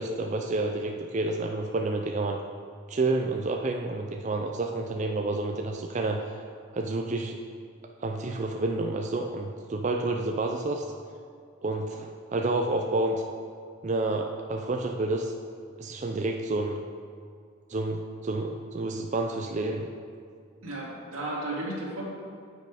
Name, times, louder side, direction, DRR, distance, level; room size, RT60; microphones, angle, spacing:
voice 1, 0.0-2.4 2.9-6.2 6.7-7.4 8.0-10.9 11.6-13.2 13.8-15.3 15.8-16.8 17.7-19.9, right 2 dB, 35° right, 3 dB, 0.4 m, -29 dB
voice 2, 20.6-22.1, right 1 dB, 90° right, -4 dB, 2.2 m, -34 dB
8.4 x 6.6 x 4.9 m, 2.3 s
head